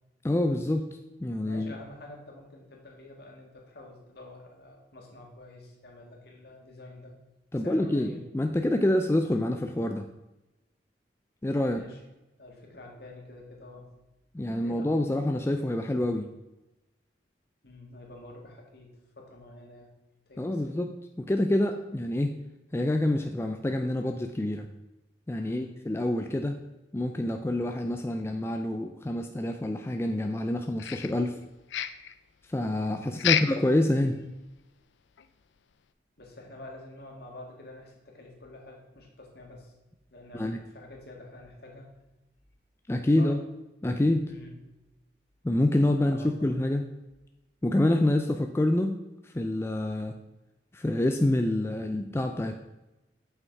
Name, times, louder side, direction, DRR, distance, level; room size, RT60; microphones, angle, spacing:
voice 1, 0.2-0.9 1.2-1.7 7.5-10.1 11.4-11.8 14.3-16.3 20.4-20.9 21.2-22.3 22.7-24.7 25.3-26.6 26.9-31.4 32.5-34.2 40.3-40.6 42.9-43.4 43.8-44.3 45.4-46.8 47.6-49.0 49.2-50.1 50.7-52.6, left 1 dB, 15° left, 5 dB, 0.4 m, -27 dB
voice 2, 1.5-7.1 7.6-8.2 11.6-12.0 12.4-13.9 14.6-14.9 17.6-18.9 19.2-19.9 20.3-20.7 25.4-25.7 33.0-33.6 36.2-39.7 40.1-41.9 43.2-43.3 44.3-44.5 46.0-46.5, left 2 dB, 60° left, 0 dB, 1.9 m, -48 dB
sound 1, 30.8-31.4 31.7-32.2 33.2-33.7 34.0-34.1 34.6-34.7 35.2-35.3, left 10 dB, 90° left, 0.5 m, -28 dB
8.0 x 5.8 x 4.6 m, 1.0 s
head